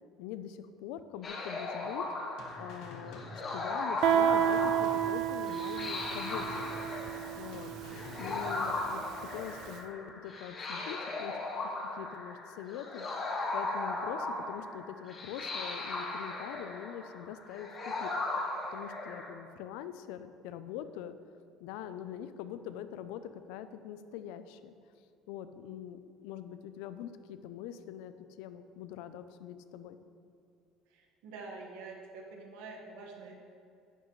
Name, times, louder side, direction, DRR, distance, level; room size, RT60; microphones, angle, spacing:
voice 1, 0.2-2.1 2.6-6.7 7.4-9.0 9.3-11.3 11.9-13.1 13.5-18.1 18.7-21.2 21.6-24.7 25.3-30.0, left 10 dB, 90° left, 11 dB, 0.5 m, -43 dB
sound 1, 1.2-19.3, left 2 dB, 25° left, 1.1 m, -37 dB
sound 2, 2.4-3.8 4.1-5.5 5.8-7.2 7.5-8.9, left 2 dB, 65° left, 1.4 m, -48 dB
Guitar, 4.0-9.5, right 10 dB, 50° right, 0.4 m, -31 dB
voice 2, 30.9-33.4, right 3 dB, 90° right, 0 dB, 1.6 m, -46 dB
11.0 x 9.8 x 3.2 m, 2.5 s
cardioid pair, 170°, 0 cm